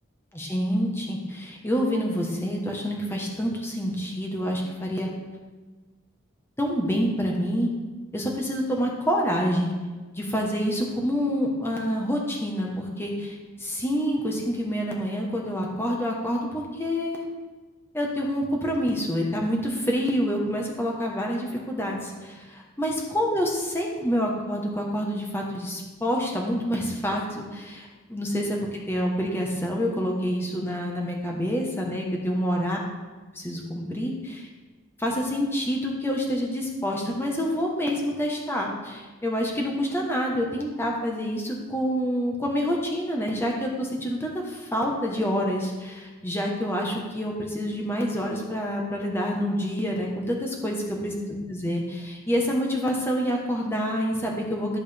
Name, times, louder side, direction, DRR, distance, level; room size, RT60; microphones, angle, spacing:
voice 1, 0.3-5.1 6.6-7.7 8.1-9.7 10.1-17.2 17.9-22.5 22.8-32.8 33.3-34.5 35.0-54.8, equal, 10° left, -1 dB, 1.2 m, -27 dB
13.5 x 6.4 x 3.4 m, 1.3 s
head